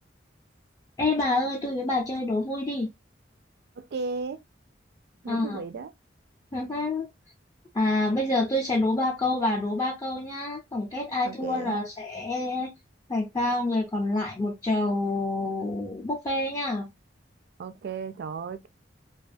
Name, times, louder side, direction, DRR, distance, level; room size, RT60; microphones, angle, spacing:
voice 1, 1.0-2.9 5.3-5.6 6.5-7.1 7.7-12.7 13.1-16.9, left 2 dB, 20° left, 0.4 m, -27 dB
voice 2, 3.8-4.4 5.2-5.9 11.2-11.8 17.6-18.7, right 4 dB, 60° right, 0.3 m, -35 dB
2.3 x 2.3 x 2.5 m
head